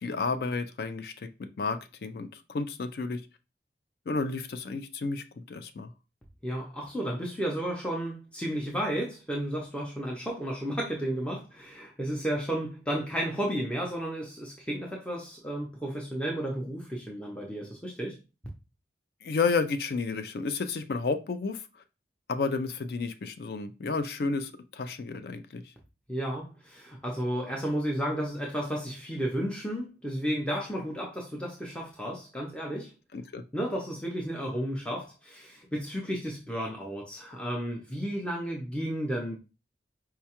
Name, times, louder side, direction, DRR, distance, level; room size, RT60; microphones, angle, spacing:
voice 1, 0.0-3.2 4.1-5.9 19.2-21.8 22.3-25.6 33.1-33.4, left 4 dB, 60° left, 0.4 m, -31 dB
voice 2, 6.4-18.2 26.1-32.9 33.5-39.4, equal, 5° left, 0.5 m, -33 dB
4.6 x 2.2 x 2.9 m
head